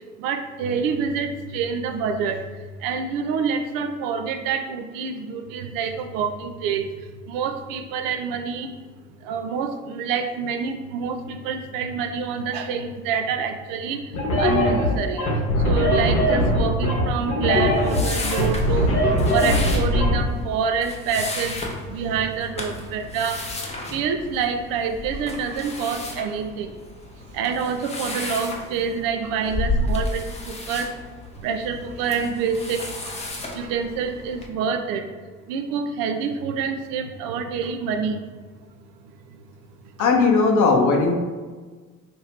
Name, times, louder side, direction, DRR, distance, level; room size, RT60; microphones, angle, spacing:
voice 1, 0.2-2.4 2.8-6.9 7.3-8.7 9.2-14.0 14.4-15.2 15.6-18.9 19.3-21.6 21.9-23.4 23.9-26.7 27.3-30.9 31.4-33.2 33.5-35.1 35.5-38.2, right 6 dB, 55° right, 6 dB, 0.5 m, -27 dB
sound 1, 14.1-20.2, left 1 dB, 85° left, 0.9 m, -20 dB
sound 2, 17.5-34.5, left 2 dB, 15° left, 0.6 m, -32 dB
voice 2, 40.0-41.1, left 4 dB, 50° left, 3 dB, 0.7 m, -17 dB
2.9 x 2.6 x 4.3 m, 1.4 s
hypercardioid pair, 60°, 41 cm